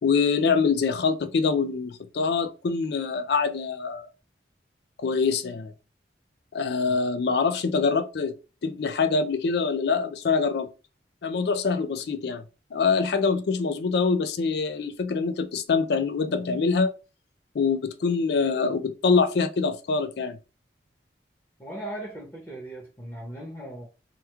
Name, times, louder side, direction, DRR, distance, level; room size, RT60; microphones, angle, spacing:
voice 1, 0.0-4.1 5.0-5.7 6.5-8.3 8.6-10.7 11.2-12.4 12.7-16.9 17.5-20.4, left 5 dB, 65° left, 0.4 m, -24 dB
voice 2, 21.6-23.9, right 1 dB, 15° left, 0.9 m, -38 dB
2.9 x 2.2 x 3.4 m
head